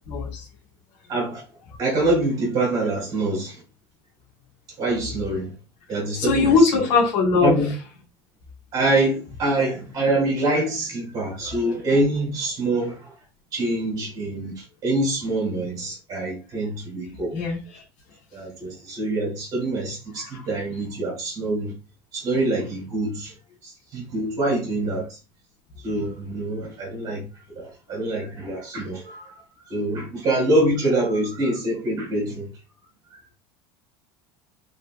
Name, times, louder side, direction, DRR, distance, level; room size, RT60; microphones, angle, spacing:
voice 1, 0.1-0.4 6.1-7.6 17.3-17.8 20.2-20.4, left 4 dB, 65° left, 2.0 m, -20 dB
voice 2, 1.1-1.4 1.8-3.6 4.8-5.5 5.9-6.7 7.4-7.7 8.7-13.1 13.5-17.3 18.3-21.7 22.1-23.3 23.6-25.2 25.8-27.2 27.5-29.4 29.7-32.5 33.1-33.2, right 2 dB, 35° right, 2.7 m, -25 dB
5.4 x 3.9 x 2.3 m
cardioid pair, 150°, 11 cm